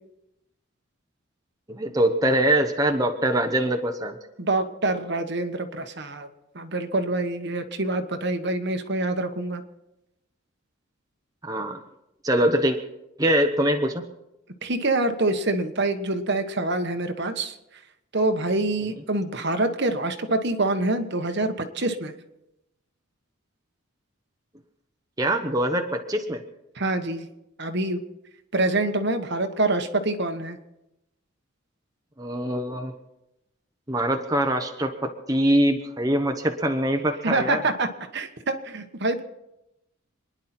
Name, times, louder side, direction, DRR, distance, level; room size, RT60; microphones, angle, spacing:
voice 1, 1.7-4.2 11.4-11.8 12.2-12.8 13.2-14.0 25.2-26.4 32.2-32.9 33.9-37.6, right 1 dB, 15° right, 4 dB, 0.9 m, -23 dB
voice 2, 4.4-6.3 6.5-9.6 14.6-17.8 18.1-22.1 26.7-27.3 27.6-28.0 28.5-30.6 37.2-39.2, right 2 dB, 50° right, 7 dB, 1.2 m, -26 dB
27.5 x 10.5 x 4.4 m, 0.90 s
head